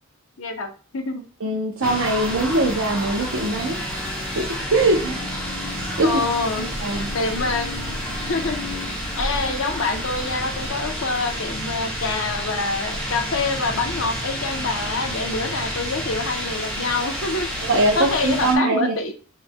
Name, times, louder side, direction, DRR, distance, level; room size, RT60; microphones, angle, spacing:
voice 1, 0.4-1.2 6.0-6.8 7.1-7.7 8.2-8.6 9.2-17.5 18.0-19.1, left 3 dB, 75° left, 0.8 m, -26 dB
voice 2, 1.4-5.2 5.7-6.2 6.6-7.1 17.6-19.0, right 2 dB, 80° right, 0.8 m, -22 dB
sound 1, 1.8-18.5, equal, 5° left, 1.4 m, -29 dB
6.6 x 3.2 x 2.2 m
head